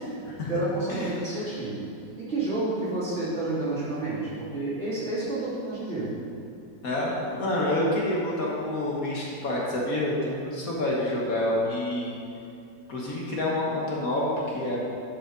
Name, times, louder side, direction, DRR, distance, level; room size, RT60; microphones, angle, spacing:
voice 1, 0.5-1.8 2.2-6.1, right 2 dB, 40° right, -10 dB, 2.8 m, -30 dB
voice 2, 6.8-12.1 12.9-14.8, left 1 dB, 55° left, -4 dB, 1.5 m, -28 dB
10.5 x 4.9 x 5.0 m, 2.5 s
omnidirectional pair, 1.9 m